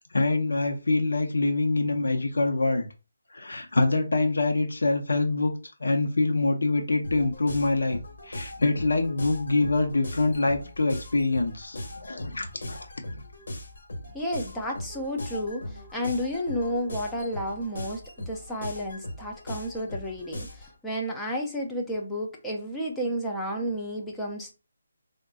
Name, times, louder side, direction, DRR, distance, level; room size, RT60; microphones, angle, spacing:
voice 1, 0.1-2.9 3.3-5.5 5.8-12.9, left 3 dB, 90° left, 0.7 m, -25 dB
sound 1, 7.0-20.8, left 1 dB, 65° left, 1.4 m, -39 dB
voice 2, 14.1-18.0 18.3-24.5, equal, 5° left, 0.4 m, -31 dB
3.6 x 2.2 x 2.3 m
hypercardioid pair, 175°, 0 cm